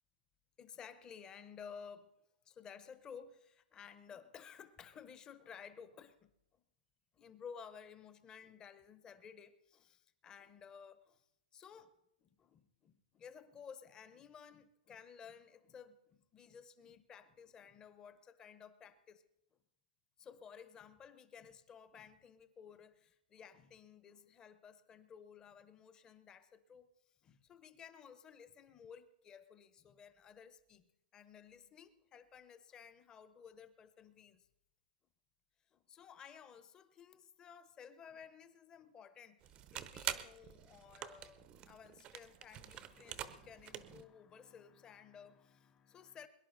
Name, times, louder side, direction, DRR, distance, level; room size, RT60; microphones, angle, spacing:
voice 1, 0.6-2.1 2.4-6.6 7.1-11.2 11.5-11.9 12.2-19.2 20.2-26.9 27.2-30.9 31.1-34.5 35.7-46.3, left 7 dB, 15° left, 0.8 m, -55 dB
sound 1, 39.4-44.0, right 11 dB, 20° right, 0.7 m, -46 dB
22.5 x 11.0 x 3.9 m
hypercardioid pair, 160°, 5 cm